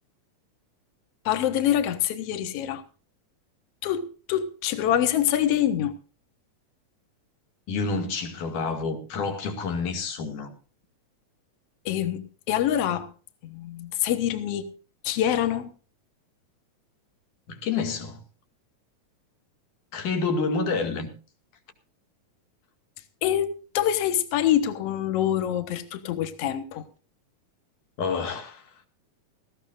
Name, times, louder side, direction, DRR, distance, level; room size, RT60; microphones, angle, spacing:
voice 1, 1.3-2.8 3.8-5.9 11.9-13.1 13.4-14.7 15.0-15.7 23.2-26.8, left 11 dB, 60° left, 2.1 m, -25 dB
voice 2, 7.7-10.5 17.5-18.2 19.9-21.1 28.0-28.6, left 4 dB, 80° left, 3.8 m, -28 dB
19.0 x 15.5 x 2.6 m
omnidirectional pair, 3.5 m